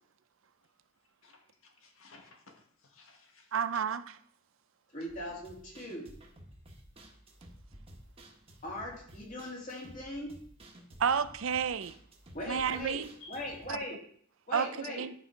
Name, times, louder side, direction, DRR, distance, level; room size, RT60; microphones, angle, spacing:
voice 1, 1.2-3.6 13.2-13.5, left 3 dB, 90° left, 1.6 m, -56 dB
voice 2, 3.5-4.0 11.0-11.9 12.5-13.1 13.7-13.8 14.5-15.1, right 7 dB, 75° right, 0.5 m, -30 dB
voice 3, 4.9-6.1 8.6-10.3 12.3-13.0 13.3-14.0 14.5-15.0, left 1 dB, 40° left, 2.7 m, -40 dB
sound 1, 5.1-13.8, right 1 dB, 30° right, 1.4 m, -54 dB
11.0 x 5.5 x 4.6 m
head